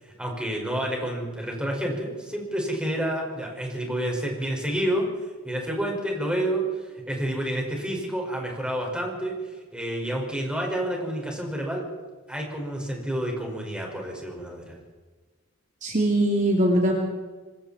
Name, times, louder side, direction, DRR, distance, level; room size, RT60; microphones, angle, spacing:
voice 1, 0.0-5.1 5.4-11.9 12.3-14.8, right 1 dB, 5° right, -1 dB, 5.5 m, -29 dB
voice 2, 15.8-16.9, right 1 dB, 40° right, 0 dB, 2.9 m, -21 dB
26.0 x 23.5 x 4.4 m, 1.3 s
head